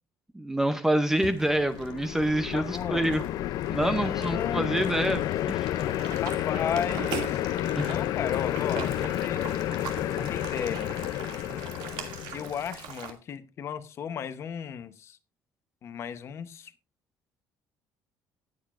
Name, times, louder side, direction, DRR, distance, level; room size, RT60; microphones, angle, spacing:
voice 1, 0.3-3.2 3.7-5.7 7.7-8.0, right 1 dB, 5° right, 0.6 m, -27 dB
sound 1, 1.1-13.1, right 8 dB, 85° right, 2.4 m, -41 dB
sound 2, 1.4-12.8, left 13 dB, 55° left, 0.5 m, -31 dB
voice 2, 2.5-3.1 3.8-4.8 5.1-5.5 6.2-7.4 7.8-9.4 10.1-10.9 12.3-15.2 15.8-16.7, left 8 dB, 35° left, 0.9 m, -35 dB
19.0 x 8.0 x 2.5 m
cardioid pair, 175°, 8 cm